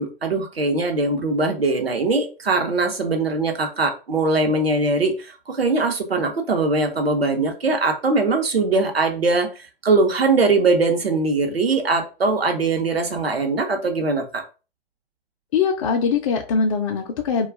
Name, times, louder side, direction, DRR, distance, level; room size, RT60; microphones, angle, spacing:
voice 1, 0.0-14.4, right 3 dB, 85° right, 4 dB, 0.8 m, -21 dB
voice 2, 15.5-17.5, left 5 dB, 35° left, 1 dB, 0.4 m, -22 dB
2.3 x 2.3 x 3.3 m, 0.32 s
figure-of-eight pair, 115°, 30 cm